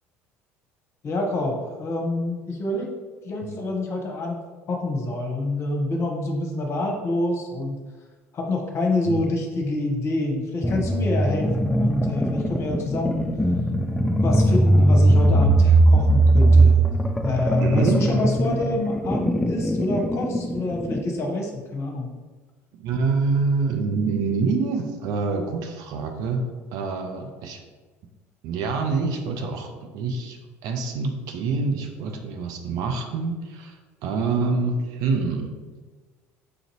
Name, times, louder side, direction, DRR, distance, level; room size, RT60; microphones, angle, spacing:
voice 1, 1.0-2.9 3.2-4.4 4.7-7.8 8.3-13.3 14.2-16.8 17.2-22.1, left 2 dB, 40° left, 1 dB, 0.8 m, -27 dB
sound 1, 10.6-21.1, right 2 dB, 5° left, 0.3 m, -20 dB
voice 2, 17.6-18.0 22.8-26.5 26.7-27.6 28.4-35.5, right 4 dB, 55° right, 4 dB, 0.5 m, -26 dB
4.9 x 2.5 x 3.0 m, 1.3 s
figure-of-eight pair, 60°, 7 cm